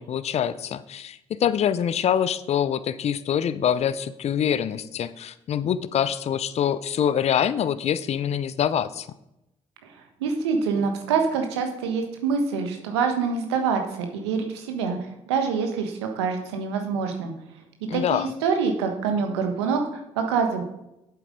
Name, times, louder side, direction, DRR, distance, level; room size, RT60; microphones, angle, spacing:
voice 1, 0.0-9.1 17.9-18.3, left 9 dB, 50° left, 15 dB, 0.6 m, -25 dB
voice 2, 10.2-17.3 17.9-20.6, right 5 dB, 90° right, 4 dB, 1.3 m, -26 dB
7.8 x 7.8 x 5.1 m, 0.87 s
hypercardioid pair, 50°, 14 cm